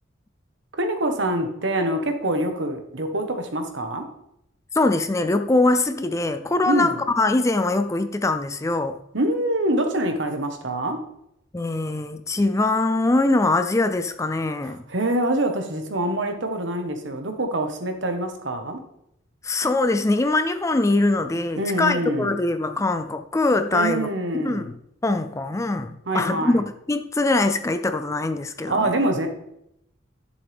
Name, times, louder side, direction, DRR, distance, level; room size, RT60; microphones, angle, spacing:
voice 1, 0.7-4.1 6.6-7.0 9.1-11.0 14.6-18.8 21.5-22.3 23.7-24.7 26.0-26.6 28.7-29.3, right 1 dB, 70° right, 5 dB, 1.4 m, -25 dB
voice 2, 4.8-9.0 11.5-14.8 19.4-24.1 24.4-24.7 25.0-28.9, left 2 dB, 15° left, 9 dB, 0.4 m, -22 dB
11.0 x 7.1 x 3.5 m, 0.78 s
head